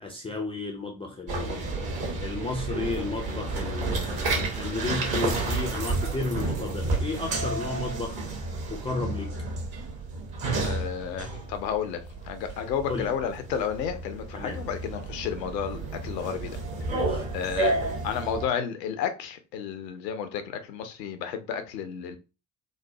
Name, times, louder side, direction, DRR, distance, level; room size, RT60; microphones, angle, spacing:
voice 1, 0.0-1.7 2.2-8.2 8.7-9.3 12.9-13.1 14.3-14.6 16.9-17.3, left 3 dB, 15° left, 0.3 m, -33 dB
sound 1, 1.3-18.5, right 3 dB, 45° right, 1.1 m, -31 dB
voice 2, 10.6-16.9 17.3-17.8 18.0-22.2, left 7 dB, 80° left, 0.5 m, -32 dB
3.0 x 2.0 x 2.7 m
figure-of-eight pair, 40°, 50 cm